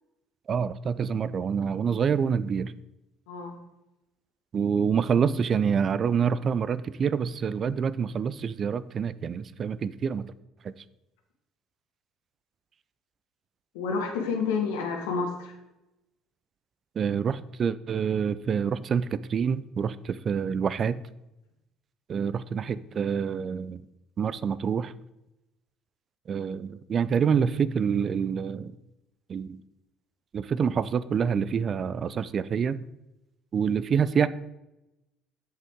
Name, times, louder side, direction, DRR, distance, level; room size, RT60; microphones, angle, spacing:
voice 1, 0.5-2.7 4.5-10.3 10.6-10.7 17.0-21.0 22.1-23.8 24.2-24.9 26.3-28.8 29.3-29.6 30.3-32.8 33.5-34.3, right 7 dB, 45° right, 16 dB, 0.4 m, -27 dB
voice 2, 3.3-3.6 13.7-15.5, left 5 dB, 75° left, 2 dB, 1.7 m, -29 dB
8.1 x 7.9 x 3.7 m, 0.92 s
hypercardioid pair, 55°, 0 cm